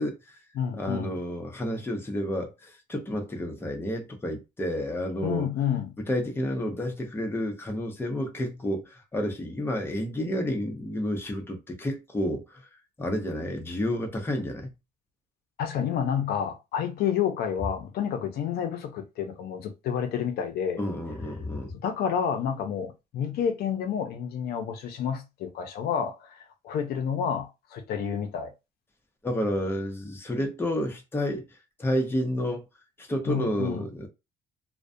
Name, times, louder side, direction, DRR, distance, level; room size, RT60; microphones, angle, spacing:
voice 1, 0.0-0.4 0.7-5.5 6.1-12.6 13.0-14.7 20.8-21.7 29.2-31.5 31.8-32.6 33.0-34.1, equal, 15° left, 0.7 m, -30 dB
voice 2, 0.6-1.1 5.2-5.9 15.6-20.8 21.8-28.5 33.3-33.9, left 8 dB, 70° left, 0.5 m, -29 dB
2.3 x 2.1 x 2.5 m
cardioid pair, 110°, 17 cm